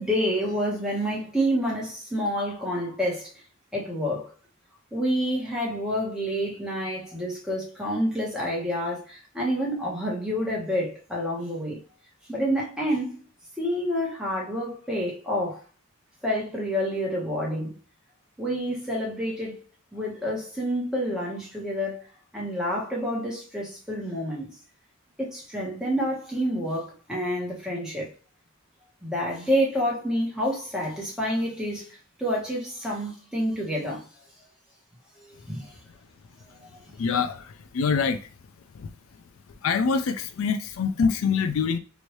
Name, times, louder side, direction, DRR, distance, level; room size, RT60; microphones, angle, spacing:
voice 1, 0.0-3.3 3.7-4.3 4.9-11.8 12.3-13.2 13.6-15.6 16.2-17.8 18.4-19.6 19.9-22.0 22.3-24.5 25.2-28.1 29.0-34.1 35.2-35.7 36.6-36.8, equal, 5° right, 1.1 m, -28 dB
voice 2, 36.9-38.3 38.7-38.9 39.6-41.8, left 5 dB, 70° left, 0.4 m, -25 dB
3.0 x 2.6 x 3.1 m
head